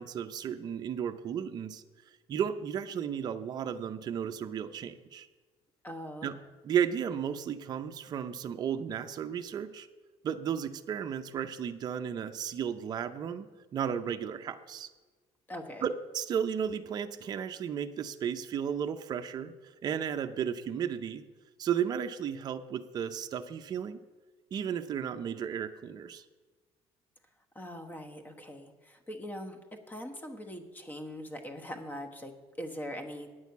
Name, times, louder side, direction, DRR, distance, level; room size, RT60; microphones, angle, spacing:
voice 1, 0.0-1.8 2.3-5.3 6.2-6.3 6.6-9.9 10.2-13.5 13.7-14.9 15.8-19.5 19.8-21.2 21.6-24.0 24.5-26.2, right 8 dB, 40° right, 7 dB, 0.5 m, -34 dB
voice 2, 5.8-6.3 15.5-15.8 27.5-33.3, equal, 15° left, 6 dB, 1.1 m, -42 dB
9.0 x 6.3 x 8.3 m, 1.3 s
cardioid pair, 140°, 11 cm